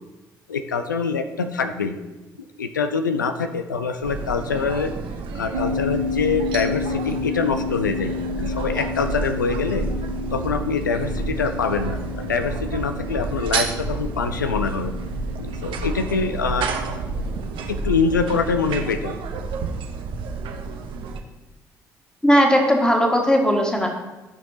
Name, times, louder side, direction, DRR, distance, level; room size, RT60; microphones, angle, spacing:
voice 1, 0.5-2.0 2.6-4.9 5.3-9.8 10.3-14.9 15.4-16.7 17.7-19.1, left 5 dB, 90° left, 8 dB, 0.4 m, -24 dB
sound 1, 4.0-21.2, right 4 dB, 60° right, 0.8 m, -30 dB
sound 2, 5.5-18.3, left 5 dB, 90° right, 1.1 m, -32 dB
voice 2, 22.2-23.9, equal, 10° left, 1 dB, 1.8 m, -17 dB
13.0 x 6.0 x 2.8 m, 1.1 s
figure-of-eight pair, 45°, 10 cm